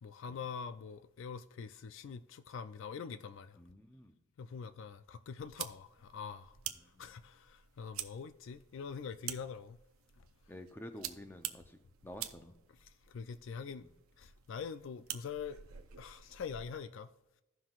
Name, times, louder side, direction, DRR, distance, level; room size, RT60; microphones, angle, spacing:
voice 1, 0.0-3.6 4.4-6.6 7.0-9.8 12.8-13.8 14.2-15.6 16.0-17.1, left 6 dB, 60° left, 0.3 m, -44 dB
voice 2, 3.6-4.2 6.9-7.1 10.5-12.6 13.8-13.9, left 1 dB, 10° left, 0.6 m, -50 dB
sound 1, 5.4-16.8, right 11 dB, 80° right, 0.6 m, -48 dB
16.0 x 5.8 x 2.4 m
head